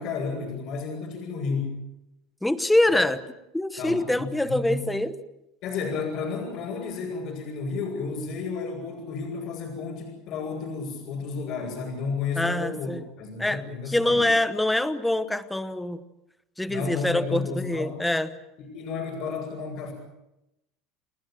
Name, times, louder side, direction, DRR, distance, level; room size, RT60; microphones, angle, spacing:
voice 1, 0.0-1.8 3.8-4.9 5.6-12.9 13.2-14.3 16.7-18.0 18.6-19.9, left 4 dB, 45° left, -4 dB, 7.5 m, -32 dB
voice 2, 2.4-3.2 3.5-5.1 12.4-13.0 13.4-16.0 16.6-18.3, left 1 dB, 5° left, 13 dB, 1.0 m, -25 dB
29.0 x 19.5 x 7.6 m, 0.91 s
cardioid pair, 160°, 0 cm